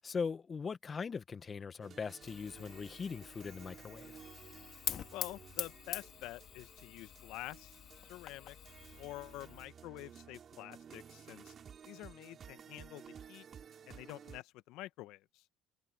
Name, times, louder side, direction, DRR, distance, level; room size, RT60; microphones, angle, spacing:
voice 1, 0.0-4.2, left 5 dB, 30° left, 1.6 m, -40 dB
sound 1, 1.8-14.4, right 7 dB, 40° right, 4.8 m, -55 dB
Fire, 2.2-9.6, left 10 dB, 50° left, 4.0 m, -46 dB
voice 2, 5.1-8.6 9.0-11.5 11.9-13.5 13.9-15.4, left 17 dB, 70° left, 1.2 m, -48 dB
supercardioid pair, 85°, 0 cm